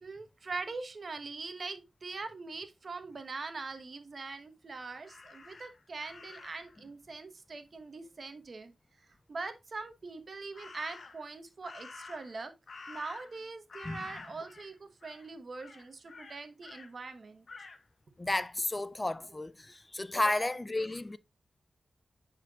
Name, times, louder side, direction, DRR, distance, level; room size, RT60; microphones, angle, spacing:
voice 1, 0.0-8.7 9.3-12.5 12.9-17.4, right 3 dB, 55° right, 1.1 m, -42 dB
Crow, 5.0-6.8 10.5-11.3 11.6-13.4 13.7-14.7 15.0-15.3 15.6-16.9 17.5-17.8, left 4 dB, 60° left, 0.9 m, -49 dB
voice 2, 18.2-21.2, left 2 dB, 25° left, 0.3 m, -32 dB
10.0 x 4.4 x 2.4 m
wide cardioid pair, 85°, 0 cm